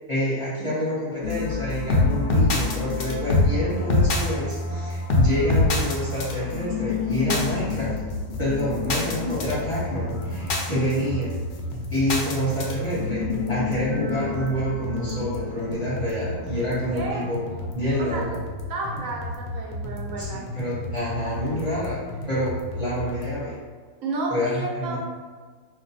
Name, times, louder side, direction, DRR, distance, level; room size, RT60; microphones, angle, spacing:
voice 1, 0.1-8.0 8.4-11.4 11.9-17.4 17.7-18.4 20.1-23.6 24.3-25.0, equal, 30° left, -10 dB, 0.7 m, -27 dB
sound 1, 1.2-17.6, left 3 dB, 65° left, 0.6 m, -26 dB
sound 2, 7.3-23.3, left 1 dB, 85° left, 1.0 m, -34 dB
voice 2, 16.9-17.3 18.0-18.2 18.7-20.4 24.0-25.0, right 3 dB, 70° right, -1 dB, 1.0 m, -31 dB
2.5 x 2.2 x 4.0 m, 1.5 s
omnidirectional pair, 1.5 m